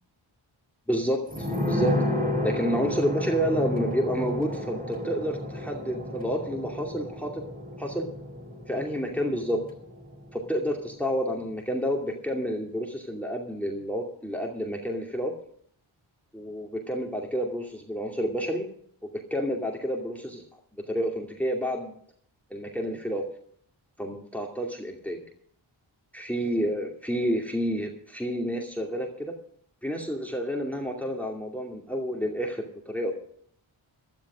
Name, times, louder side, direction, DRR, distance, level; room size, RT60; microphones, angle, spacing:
voice 1, 0.9-1.9 2.4-7.3 7.8-8.1 8.7-9.6 10.3-15.3 16.3-18.7 19.0-20.4 20.9-21.9 22.5-23.2 24.0-25.2 26.1-29.3 29.8-33.1, equal, 5° left, 0 dB, 2.5 m, -29 dB
sound 1, 1.3-10.6 10.9-11.0, left 1 dB, 15° right, 3.8 m, -31 dB
12.5 x 12.0 x 6.3 m, 0.62 s
cardioid pair, 45°, 49 cm